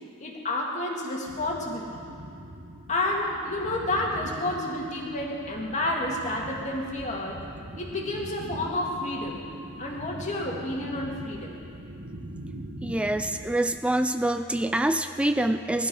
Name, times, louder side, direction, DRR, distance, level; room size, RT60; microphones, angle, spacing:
voice 1, 0.2-2.0 2.9-7.4 7.8-9.4 9.8-11.6, left 1 dB, 35° left, -1 dB, 2.3 m, -30 dB
sound 1, 1.3-13.7, right 1 dB, 65° right, 2.1 m, -42 dB
voice 2, 12.8-15.9, right 1 dB, 5° right, 9 dB, 0.4 m, -26 dB
19.5 x 12.5 x 5.5 m, 2.5 s
head